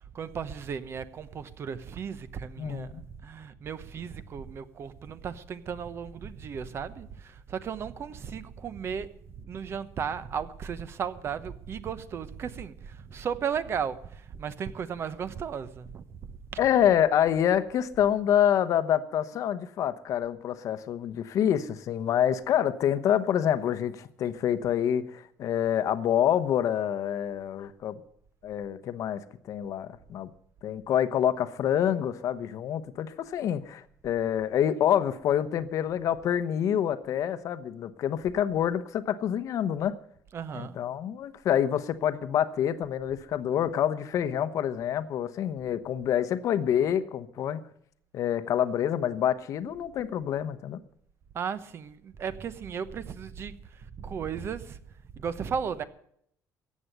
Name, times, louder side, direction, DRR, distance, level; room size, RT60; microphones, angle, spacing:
voice 1, 0.1-9.1 9.4-16.1 16.5-16.6 40.3-40.8 51.3-54.8 55.1-55.8, right 7 dB, 40° right, 1.0 m, -35 dB
voice 2, 2.6-3.0 16.6-28.0 28.4-29.2 29.5-30.3 30.6-39.9 40.5-47.6 48.1-50.8, left 10 dB, 55° left, 1.0 m, -27 dB
15.0 x 8.6 x 9.1 m
cardioid pair, 140°, 7 cm